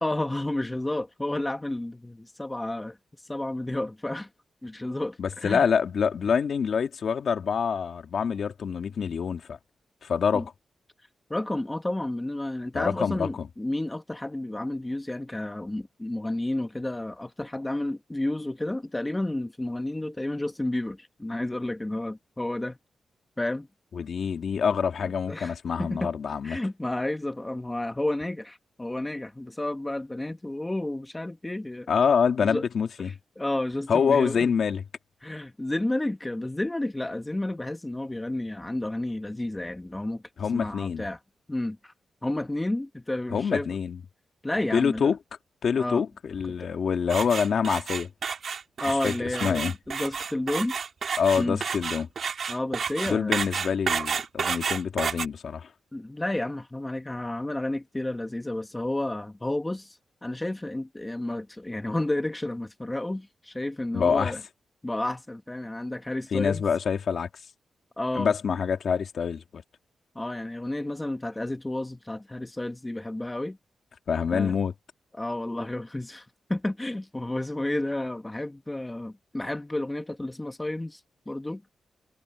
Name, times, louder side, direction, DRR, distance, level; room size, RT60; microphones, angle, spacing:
voice 1, 0.0-3.0 3.2-4.3 4.6-5.7 10.3-10.5 11.3-22.8 23.4-23.7 25.3-26.1 26.4-31.9 32.4-32.6 33.0-34.5 35.2-40.2 40.5-41.2 41.5-41.9 42.2-43.8 44.4-45.1 45.8-46.0 46.5-46.7 48.8-50.8 51.3-51.6 52.5-53.5 55.9-64.4 64.8-66.6 68.0-68.3 70.1-73.6 74.3-74.5 75.1-81.0 81.3-81.7, left 1 dB, 10° left, 1.2 m, -31 dB
voice 2, 5.2-9.6 10.0-10.5 12.7-13.5 24.0-26.6 31.9-33.1 33.9-34.8 40.4-41.1 43.3-44.0 44.7-45.2 45.6-48.1 49.0-49.1 49.4-49.7 51.2-52.1 53.1-55.7 63.9-64.3 66.3-67.3 68.2-69.6 74.1-74.7, left 6 dB, 65° left, 2.1 m, -26 dB
sound 1, 47.1-55.3, right 6 dB, 55° right, 1.8 m, -30 dB
wide cardioid pair, 125°, 0 cm